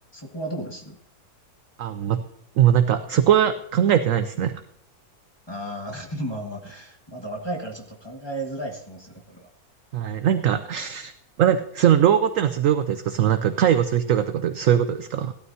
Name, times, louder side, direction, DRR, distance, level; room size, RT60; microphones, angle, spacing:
voice 1, 0.1-1.0 5.5-9.5, right 1 dB, 15° left, 1 dB, 1.7 m, -34 dB
voice 2, 1.8-2.2 2.6-4.6 9.9-11.1 11.4-15.3, right 10 dB, 65° right, 10 dB, 0.9 m, -21 dB
16.5 x 12.5 x 2.8 m, 0.78 s
omnidirectional pair, 1.6 m